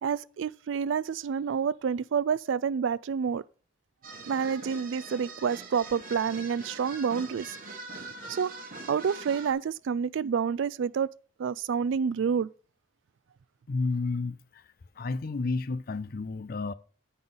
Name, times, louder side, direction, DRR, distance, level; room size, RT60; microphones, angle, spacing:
voice 1, 0.0-3.4 4.3-7.6 8.3-8.5 8.9-11.1 11.4-12.5, right 6 dB, 75° right, 0.3 m, -28 dB
sound 1, 4.0-9.5, right 3 dB, 45° right, 1.4 m, -43 dB
voice 2, 13.7-14.6 15.0-16.7, left 3 dB, 50° left, 0.5 m, -31 dB
7.8 x 5.6 x 5.2 m
head